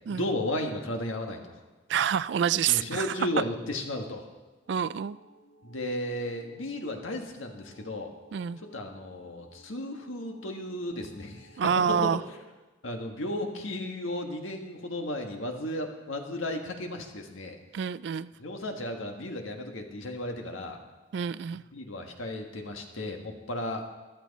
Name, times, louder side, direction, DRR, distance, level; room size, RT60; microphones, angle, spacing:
voice 1, 0.1-1.5 2.7-4.3 5.6-8.1 8.7-11.5 11.9-12.1 12.8-17.6 18.4-20.8 21.7-23.8, left 1 dB, 85° left, 3 dB, 1.6 m, -34 dB
voice 2, 1.9-3.1 4.7-5.2 8.3-8.6 11.6-12.2 17.7-18.3 21.1-21.6, right 8 dB, 60° right, 17 dB, 0.3 m, -27 dB
sound 1, 4.6-12.2, equal, 60° left, 3.9 m, -58 dB
14.5 x 12.0 x 4.1 m, 1.2 s
head